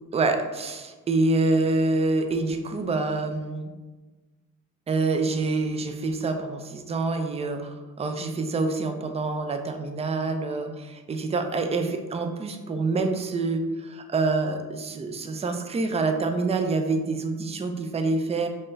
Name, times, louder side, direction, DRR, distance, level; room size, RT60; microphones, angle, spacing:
voice 1, 0.1-3.7 4.9-18.5, right 3 dB, 20° right, 6 dB, 0.4 m, -26 dB
4.2 x 2.5 x 3.2 m, 1.2 s
cardioid pair, 90°, 30 cm